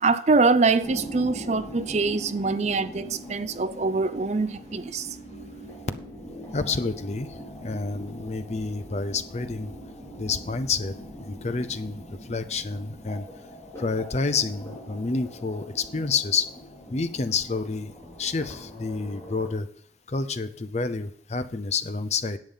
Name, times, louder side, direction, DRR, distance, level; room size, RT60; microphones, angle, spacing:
voice 1, 0.0-5.2, right 3 dB, 40° right, 0.5 m, -24 dB
sound 1, 0.8-19.5, equal, 15° left, 3.6 m, -42 dB
voice 2, 6.5-7.3 7.6-9.7 10.2-10.9 11.2-12.0 12.3-13.3 13.8-16.5 16.9-17.9 18.2-19.7 20.1-22.4, left 4 dB, 35° left, 0.6 m, -29 dB
10.5 x 7.2 x 5.6 m
head